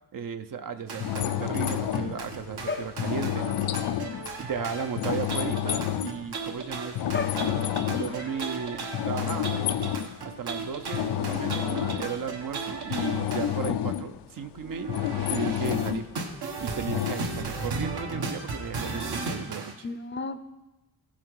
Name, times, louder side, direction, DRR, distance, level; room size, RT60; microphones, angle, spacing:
voice 1, 0.1-3.5 4.4-7.1 7.9-9.5 10.2-14.9 15.3-16.1 16.6-19.9, right 7 dB, 55° right, 9 dB, 0.7 m, -35 dB
sound 1, 0.9-13.6 14.6-19.7, right 3 dB, 75° right, 1.3 m, -36 dB
sound 2, 1.0-6.3 6.7-8.7 8.9-10.2 10.5-14.2 14.6-16.1 16.9-17.2, left 11 dB, 80° left, 0.5 m, -29 dB
voice 2, 19.8-20.4, left 4 dB, 30° left, 11 dB, 0.5 m, -32 dB
15.5 x 5.7 x 4.8 m, 1.0 s
cardioid pair, 80°, 39 cm